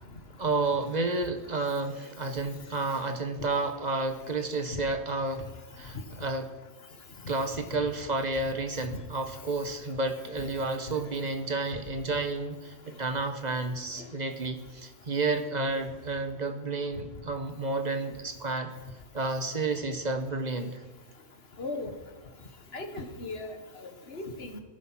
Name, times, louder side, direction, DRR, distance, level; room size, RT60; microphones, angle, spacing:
voice 1, 0.4-5.5 5.8-6.5 7.3-18.7 19.1-20.8, right 3 dB, 30° right, 7 dB, 1.3 m, -31 dB
voice 2, 21.6-21.9 22.7-23.5 23.8-24.6, left 2 dB, 45° left, 6 dB, 1.6 m, -37 dB
16.0 x 11.0 x 6.1 m, 1.2 s
omnidirectional pair, 1.5 m